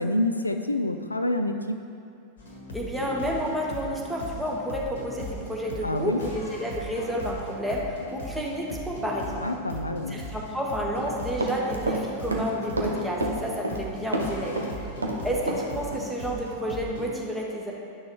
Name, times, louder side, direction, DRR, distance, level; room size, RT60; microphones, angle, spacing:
voice 1, 0.0-1.8 5.8-6.2 9.4-10.2, left 1 dB, 85° left, 7 dB, 0.3 m, -27 dB
sound 1, 2.4-17.1, equal, 65° left, 1.3 m, -39 dB
voice 2, 2.7-9.4 10.1-14.6 15.2-17.7, equal, ahead, -3 dB, 1.2 m, -30 dB
Run, 11.0-12.0 12.3-13.9 14.1-15.7 15.9-16.1, right 2 dB, 75° right, 0.8 m, -29 dB
11.0 x 6.2 x 3.1 m, 2.5 s
figure-of-eight pair, 90°, 0 cm